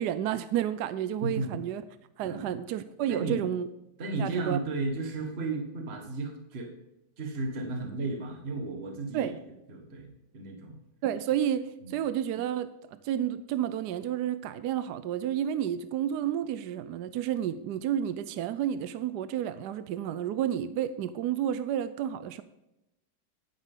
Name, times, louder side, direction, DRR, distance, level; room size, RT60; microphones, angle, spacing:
voice 1, 0.0-1.8 2.2-3.7 4.2-4.6 9.1-9.4 11.0-22.4, right 10 dB, 70° right, 1.1 m, -31 dB
voice 2, 1.2-1.5 2.2-2.5 3.1-3.5 4.0-6.7 7.2-9.3 9.7-10.8 11.8-12.0, right 3 dB, 35° right, 1.6 m, -34 dB
11.0 x 9.7 x 3.7 m
omnidirectional pair, 2.0 m